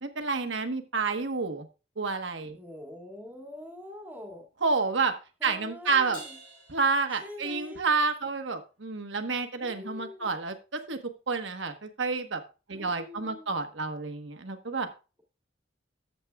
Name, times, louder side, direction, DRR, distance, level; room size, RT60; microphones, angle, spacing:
voice 1, 0.0-1.7 2.0-2.6 4.6-5.1 5.4-6.2 6.7-11.0 11.3-12.4 12.7-14.9, right 4 dB, 70° right, 7 dB, 1.2 m, -29 dB
voice 2, 2.6-4.5 5.4-6.4 7.2-7.9 9.6-10.3 12.7-13.5, left 1 dB, 10° right, 0 dB, 2.2 m, -44 dB
Crash cymbal, 6.1-7.9, equal, 25° left, 6.0 m, -49 dB
13.5 x 7.6 x 2.4 m, 0.32 s
head